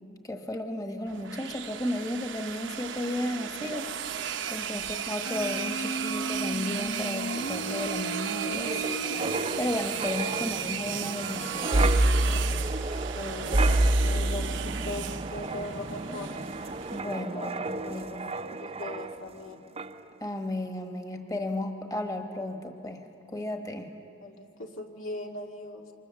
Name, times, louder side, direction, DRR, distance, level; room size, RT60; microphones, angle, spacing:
voice 1, 0.2-3.9 4.5-8.9 9.2-11.9 16.9-18.3 20.2-23.9, left 1 dB, 20° left, 4 dB, 1.3 m, -34 dB
sound 1, 1.1-17.0, right 9 dB, 65° right, 0.8 m, -35 dB
Human voice, 5.2-10.2, right 1 dB, 45° left, 0.6 m, -36 dB
Wind, 7.1-19.5 19.8-20.0, right 1 dB, 30° right, 0.6 m, -29 dB
voice 2, 13.1-13.7 14.0-16.3 17.3-18.2 18.6-19.6 24.2-25.9, left 2 dB, 85° left, 2 dB, 2.0 m, -39 dB
28.0 x 24.5 x 7.1 m, 2.8 s
head